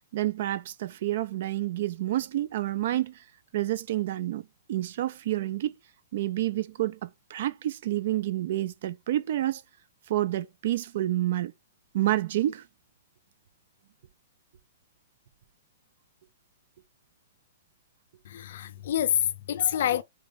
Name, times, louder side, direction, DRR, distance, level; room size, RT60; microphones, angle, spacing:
voice 1, 0.1-3.2 3.5-4.4 4.7-5.7 6.1-9.6 10.1-11.5 11.9-12.6, right 14 dB, 50° right, 0.5 m, -29 dB
voice 2, 18.2-20.0, left 10 dB, 55° left, 0.5 m, -27 dB
4.1 x 3.4 x 3.7 m
hypercardioid pair, 170°, 0 cm